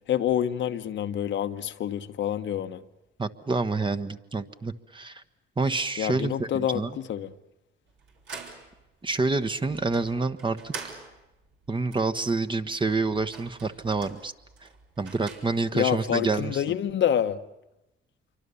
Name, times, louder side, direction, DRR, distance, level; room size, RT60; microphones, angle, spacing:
voice 1, 0.1-2.8 6.0-7.3 15.7-17.4, left 10 dB, 70° left, 1.1 m, -27 dB
voice 2, 3.2-5.2 5.6-7.0 9.0-10.7 11.7-14.3 14.6-14.7 15.0-16.6, right 3 dB, 25° right, 1.3 m, -28 dB
sound 1, 7.9-15.9, right 4 dB, 75° right, 4.7 m, -46 dB
27.0 x 24.5 x 7.0 m
cardioid pair, 90°, 20 cm